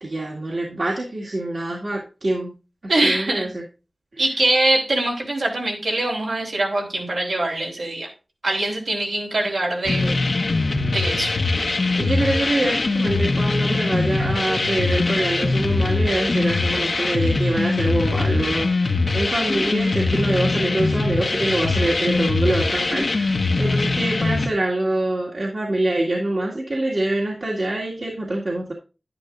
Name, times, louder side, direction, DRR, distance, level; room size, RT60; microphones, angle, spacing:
voice 1, 0.0-2.5 2.8-3.6 12.0-28.7, right 1 dB, 65° right, -4 dB, 2.2 m, -25 dB
voice 2, 2.9-3.5 4.2-8.1 8.4-10.2 10.9-11.3, right 2 dB, 90° right, -1 dB, 3.7 m, -23 dB
sound 1, 9.9-24.5, left 3 dB, 70° left, 0.9 m, -22 dB
11.0 x 10.5 x 2.6 m, 0.32 s
wide cardioid pair, 55°, 0 cm